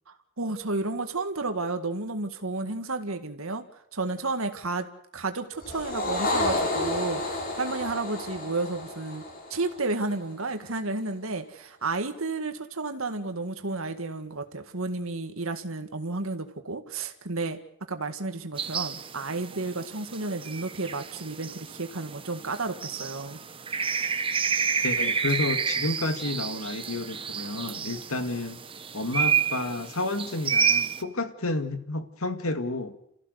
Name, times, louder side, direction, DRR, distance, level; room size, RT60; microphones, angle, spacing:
voice 1, 0.1-3.6 3.9-4.9 5.1-9.2 9.5-17.6 17.9-23.4, right 3 dB, 70° right, 7 dB, 1.9 m, -32 dB
sound 1, 5.6-10.2, left 2 dB, 40° left, 5.4 m, -31 dB
sound 2, 18.6-31.0, right 6 dB, 25° right, 0.9 m, -30 dB
voice 2, 24.8-28.6 28.9-32.9, left 2 dB, 75° left, 8 dB, 2.1 m, -30 dB
29.0 x 15.0 x 8.1 m, 0.75 s
head